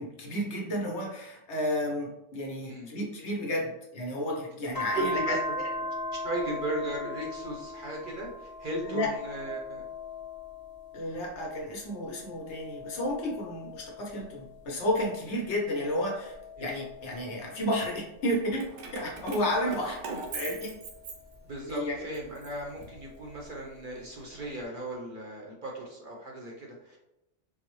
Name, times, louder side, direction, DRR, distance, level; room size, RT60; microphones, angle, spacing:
voice 1, 0.0-5.7 8.8-9.1 10.9-16.3 16.6-20.0 20.3-20.8 21.6-22.0, left 1 dB, 65° left, -1 dB, 1.1 m, -32 dB
sound 1, 4.7-11.5 11.9-14.8 15.4-18.2 18.9-21.4 22.7-23.8, left 2 dB, 30° left, 0.4 m, -40 dB
voice 2, 4.9-5.4 6.2-9.8 16.6-16.7 19.6-19.8 21.4-27.0, right 1 dB, 55° right, -2 dB, 0.7 m, -36 dB
Keys jangling, 18.5-21.7 22.1-23.4, right 4 dB, 75° right, 0.9 m, -42 dB
3.9 x 2.1 x 3.0 m, 0.90 s
omnidirectional pair, 1.3 m